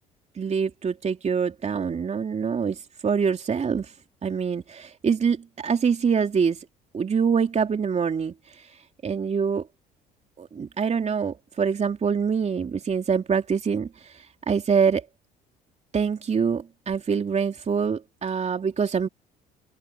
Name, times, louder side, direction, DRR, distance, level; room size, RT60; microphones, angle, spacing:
voice 1, 0.4-3.9 4.2-6.6 6.9-8.7 9.0-9.7 10.4-15.0 15.9-19.1, right 6 dB, 35° right, 3.1 m, -25 dB
hypercardioid pair, 60°, 19 cm